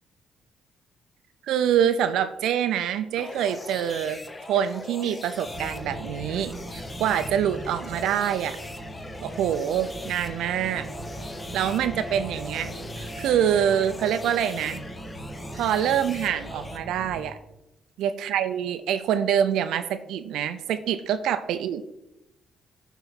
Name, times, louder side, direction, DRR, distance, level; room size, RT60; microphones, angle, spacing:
voice 1, 1.5-4.2 4.5-8.6 9.2-10.9 11.5-14.8 15.5-17.4 18.0-21.8, right 9 dB, 85° right, 11 dB, 0.5 m, -25 dB
sound 1, 3.2-16.8, left 2 dB, 20° left, 0.9 m, -41 dB
sound 2, 5.4-17.3, right 1 dB, 15° right, 1.9 m, -39 dB
10.5 x 4.0 x 5.7 m, 0.91 s
cardioid pair, 90°, 0 cm